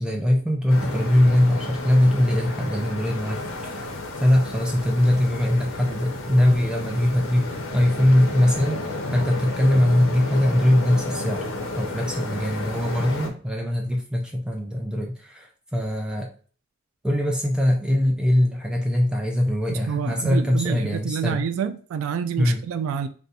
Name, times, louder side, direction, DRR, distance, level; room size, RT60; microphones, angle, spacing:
voice 1, 0.0-4.0 4.2-11.4 11.8-16.3 17.0-21.5 22.4-22.6, left 1 dB, 5° right, 0.4 m, -21 dB
sound 1, 0.7-13.3, left 2 dB, 85° left, 0.7 m, -32 dB
voice 2, 19.9-23.1, right 7 dB, 90° right, 0.3 m, -28 dB
2.5 x 2.2 x 4.0 m
head